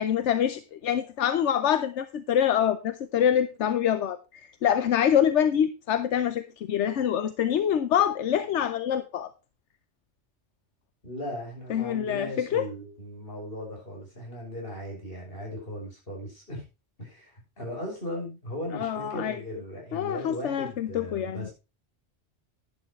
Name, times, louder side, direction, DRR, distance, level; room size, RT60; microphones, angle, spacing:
voice 1, 0.0-9.3 11.7-12.7 18.7-19.4 19.9-21.5, left 9 dB, 85° left, 11 dB, 1.1 m, -25 dB
voice 2, 11.0-16.6 17.0-21.5, left 1 dB, 55° left, -1 dB, 6.9 m, -37 dB
11.5 x 11.0 x 3.1 m, 0.29 s
omnidirectional pair, 1.2 m